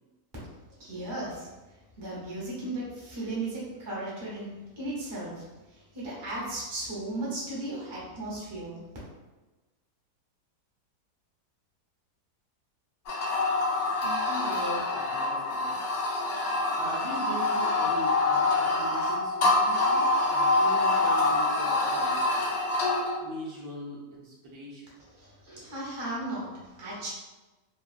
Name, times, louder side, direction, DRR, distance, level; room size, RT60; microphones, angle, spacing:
voice 1, 0.8-1.5 2.0-5.4 5.9-8.8 25.2-27.1, right 2 dB, 25° right, -7 dB, 0.6 m, -36 dB
sound 1, 13.1-23.2, left 2 dB, 70° left, 0.7 m, -26 dB
voice 2, 13.8-15.8 16.5-22.3 23.2-24.9, equal, 70° right, -4 dB, 1.0 m, -40 dB
3.0 x 2.4 x 2.4 m, 1.2 s
omnidirectional pair, 1.8 m